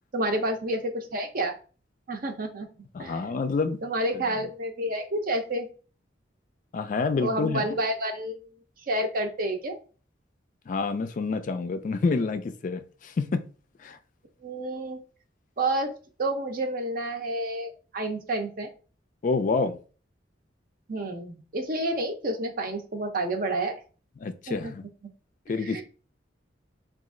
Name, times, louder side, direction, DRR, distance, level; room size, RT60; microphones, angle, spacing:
voice 1, 0.1-1.6 2.1-2.7 3.0-3.2 3.8-5.7 7.2-8.3 8.9-9.8 14.4-15.0 15.6-15.9 16.2-18.7 20.9-23.8 24.5-24.7 25.6-25.8, right 1 dB, 50° right, 0.6 m, -29 dB
voice 2, 2.9-3.8 4.1-4.2 6.7-7.6 10.7-13.4 13.8-14.0 19.2-19.8 24.2-24.8 25.5-25.8, left 4 dB, 45° left, 0.3 m, -28 dB
3.0 x 2.4 x 3.7 m
head